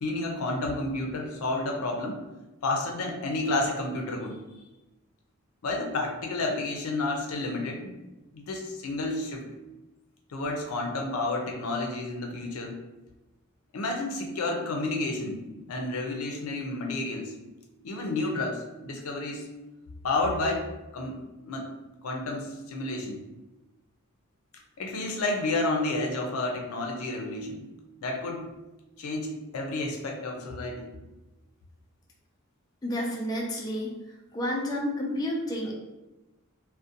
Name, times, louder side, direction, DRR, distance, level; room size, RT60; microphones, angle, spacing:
voice 1, 0.0-2.2 2.6-4.4 5.6-7.9 8.3-9.4 10.3-12.8 13.7-15.4 15.7-17.3 17.8-19.5 20.0-20.7 20.9-21.7 22.0-23.2 24.8-27.6 28.0-28.4 29.0-30.9, left 2 dB, 80° left, 2 dB, 0.5 m, -30 dB
voice 2, 32.8-33.9 34.3-35.7, equal, 20° left, -2 dB, 0.3 m, -30 dB
2.4 x 2.1 x 2.7 m, 1.0 s
head